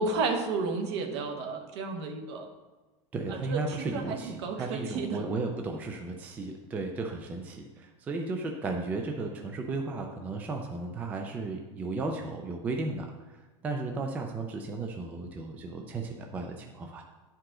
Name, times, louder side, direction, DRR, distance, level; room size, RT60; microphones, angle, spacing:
voice 1, 0.0-2.5 3.5-5.2, right 4 dB, 60° right, 4 dB, 1.1 m, -32 dB
voice 2, 3.1-17.0, right 3 dB, 10° right, 3 dB, 0.3 m, -35 dB
10.0 x 4.8 x 3.7 m, 1.2 s
supercardioid pair, 170°, 16 cm